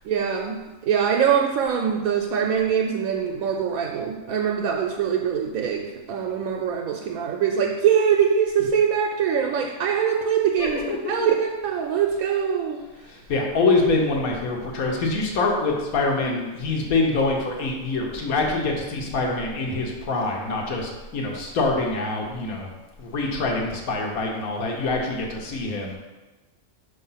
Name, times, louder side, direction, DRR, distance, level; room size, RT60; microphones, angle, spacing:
voice 1, 0.0-12.8, right 7 dB, 85° right, 1 dB, 1.0 m, -23 dB
voice 2, 10.6-11.3 13.0-22.7 23.0-26.0, left 3 dB, 85° left, 0 dB, 1.4 m, -25 dB
5.6 x 3.1 x 5.5 m, 1.2 s
omnidirectional pair, 1.5 m